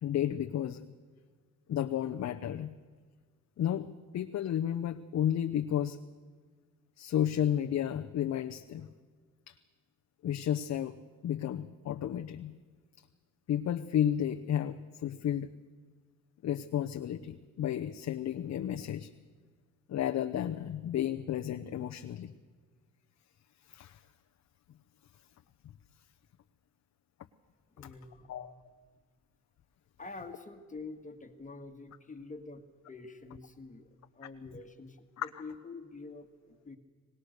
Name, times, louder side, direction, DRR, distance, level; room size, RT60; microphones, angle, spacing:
voice 1, 0.0-0.9 1.7-2.7 3.6-6.0 7.0-8.9 9.5-9.6 10.2-11.0 11.2-12.5 13.5-15.5 16.4-19.1 19.9-22.3 23.7-24.0 27.8-27.9 28.3-28.5 35.2-35.3, left 10 dB, 60° left, 6 dB, 0.8 m, -32 dB
voice 2, 27.8-28.3 30.0-36.8, left 3 dB, 25° left, 6 dB, 1.8 m, -47 dB
24.5 x 19.5 x 6.6 m, 1.5 s
cardioid pair, 90°, 30 cm